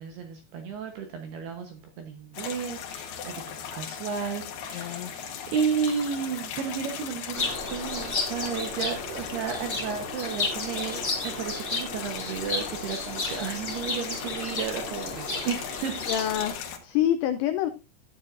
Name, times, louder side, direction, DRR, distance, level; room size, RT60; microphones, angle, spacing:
voice 1, 0.0-16.1, right 6 dB, 75° right, 5 dB, 2.4 m, -33 dB
sound 1, 2.3-16.8, left 8 dB, 65° left, 3.0 m, -38 dB
voice 2, 4.7-5.1 16.1-17.7, left 11 dB, 85° left, 8 dB, 2.6 m, -27 dB
sound 2, 7.3-16.5, left 3 dB, 40° left, 0.9 m, -33 dB
13.5 x 9.6 x 2.6 m, 0.27 s
omnidirectional pair, 6.0 m